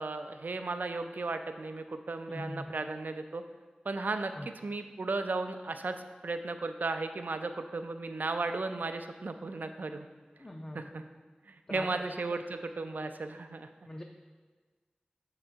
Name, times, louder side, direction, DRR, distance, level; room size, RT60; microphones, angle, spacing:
voice 1, 0.0-3.4 3.9-4.3 4.6-5.9 6.2-10.1 10.7-11.0 11.5-13.7, right 3 dB, 75° right, 8 dB, 0.4 m, -35 dB
voice 2, 2.3-2.7 4.4-4.5 10.4-10.9 11.7-11.9 13.9-14.0, left 1 dB, 30° left, 1 dB, 0.4 m, -41 dB
6.1 x 3.8 x 4.5 m, 1.4 s
wide cardioid pair, 50°, 3 cm